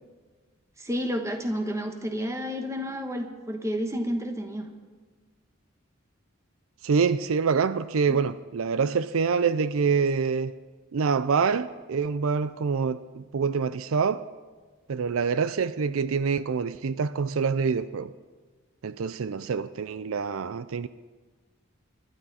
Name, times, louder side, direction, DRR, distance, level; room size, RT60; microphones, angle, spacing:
voice 1, 0.8-4.7 8.1-8.2, equal, 15° right, 1.3 m, -30 dB
voice 2, 6.8-10.6 10.9-14.3 14.9-18.1 18.8-20.9, right 5 dB, 75° right, 0.4 m, -26 dB
25.0 x 12.0 x 4.2 m
head